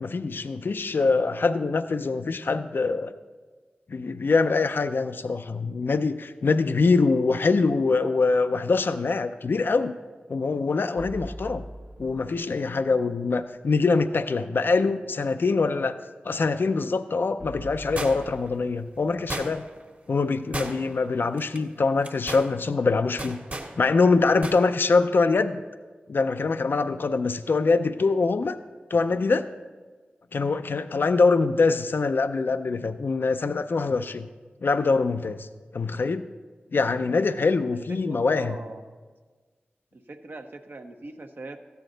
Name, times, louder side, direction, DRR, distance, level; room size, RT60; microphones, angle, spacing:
voice 1, 0.0-3.1 3.9-9.9 10.3-11.6 12.0-15.9 16.2-19.6 20.1-23.4 23.8-25.6 26.1-28.6 28.9-29.5 30.3-34.3 34.6-35.5 35.7-36.3 36.7-38.6, left 4 dB, 65° left, 10 dB, 0.4 m, -24 dB
sound 1, 11.0-13.1 17.4-20.6, equal, 10° right, 0.8 m, -43 dB
sound 2, 18.0-18.5 19.3-19.8 20.5-21.0 21.4-21.6 22.0-22.5 23.2-23.7 24.4-24.6 24.9-25.0, right 1 dB, 45° right, 1.5 m, -33 dB
voice 2, 37.7-38.8 39.9-41.6, right 2 dB, 65° right, 5 dB, 0.8 m, -41 dB
13.5 x 9.2 x 3.9 m, 1.4 s
cardioid pair, 50°, 4 cm